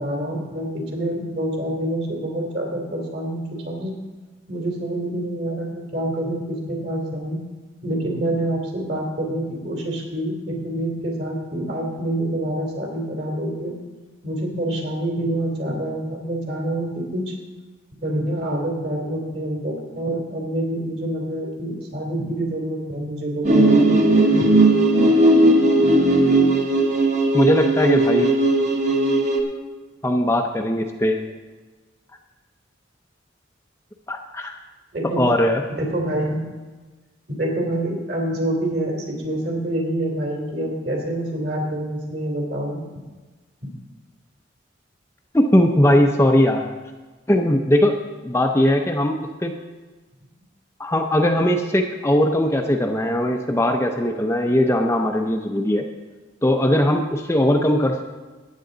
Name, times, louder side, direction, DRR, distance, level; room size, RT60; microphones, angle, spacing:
voice 1, 0.0-3.9 4.5-7.4 7.8-13.8 14.2-17.3 18.0-23.8 34.9-35.3 35.8-36.4 37.3-42.8 43.6-43.7, right 1 dB, 55° right, -1 dB, 2.9 m, -26 dB
sound 1, 23.4-29.4, right 1 dB, 35° right, 1.2 m, -17 dB
voice 2, 27.3-28.4 30.0-31.2 34.1-34.5 35.0-35.6 45.3-46.7 47.3-48.0 48.2-49.5 50.8-55.8 56.4-58.0, left 1 dB, 15° left, 3 dB, 0.6 m, -19 dB
14.5 x 9.6 x 3.9 m, 1.3 s
head